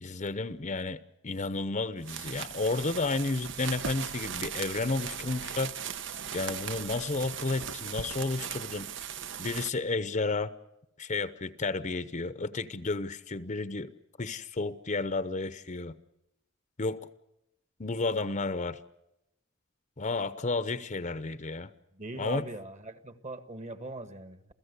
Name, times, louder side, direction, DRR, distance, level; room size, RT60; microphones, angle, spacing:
voice 1, 0.0-1.0 1.2-5.7 6.3-8.9 9.4-10.5 11.0-13.9 14.2-15.9 16.8-17.0 17.8-18.8 20.0-21.7 22.2-22.4, left 3 dB, 35° left, 0.8 m, -32 dB
sound 1, 2.0-9.7, right 8 dB, 65° right, 1.0 m, -38 dB
voice 2, 21.9-24.5, right 2 dB, 35° right, 1.6 m, -41 dB
28.0 x 16.5 x 8.2 m
head